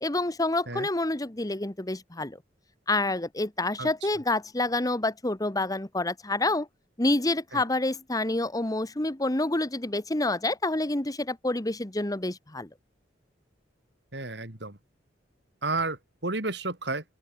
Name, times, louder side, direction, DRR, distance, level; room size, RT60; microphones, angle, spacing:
voice 1, 0.0-2.4 2.9-6.7 7.0-12.7, left 2 dB, 20° left, 1.3 m, -28 dB
voice 2, 14.1-14.8 15.6-17.0, right 3 dB, 70° right, 3.8 m, -32 dB
open air
head